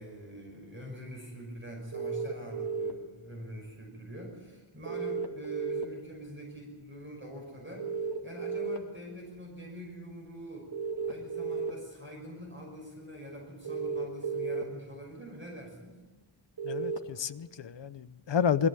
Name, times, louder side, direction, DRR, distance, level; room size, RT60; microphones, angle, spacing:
voice 1, 0.0-10.7 11.0-16.0, equal, 25° right, 0 dB, 6.1 m, -45 dB
sound 1, 1.9-2.9 4.9-5.8 7.8-8.8 10.7-11.7 13.6-14.6 16.6-17.0, right 5 dB, 50° right, 2.5 m, -33 dB
voice 2, 16.6-18.7, left 7 dB, 60° left, 13 dB, 0.9 m, -30 dB
22.0 x 15.0 x 9.1 m, 1.2 s
wide cardioid pair, 115°, 49 cm